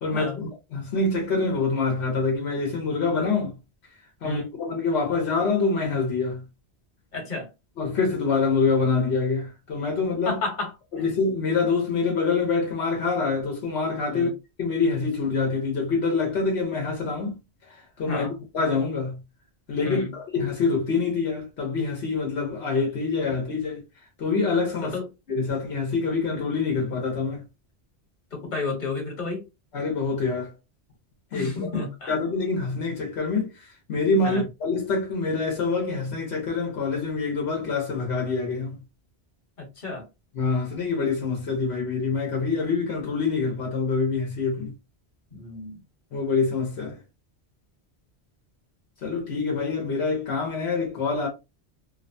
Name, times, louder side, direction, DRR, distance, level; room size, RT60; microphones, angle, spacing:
voice 1, 0.0-3.6 4.2-6.4 7.8-10.4 10.9-14.3 14.6-17.4 17.7-18.3 18.5-19.2 19.7-23.8 24.2-25.0 25.3-27.4 29.7-30.5 31.3-38.8 40.3-44.7 46.1-47.0 49.0-51.3, left 4 dB, 75° left, 1.1 m, -26 dB
voice 2, 7.1-7.5 10.3-10.7 14.1-14.3 18.1-18.3 19.8-20.1 24.8-25.0 28.3-29.4 31.3-32.1 34.2-34.4 39.6-40.0 45.3-45.8, left 3 dB, 45° left, 1.3 m, -31 dB
2.9 x 2.1 x 2.6 m
omnidirectional pair, 1.1 m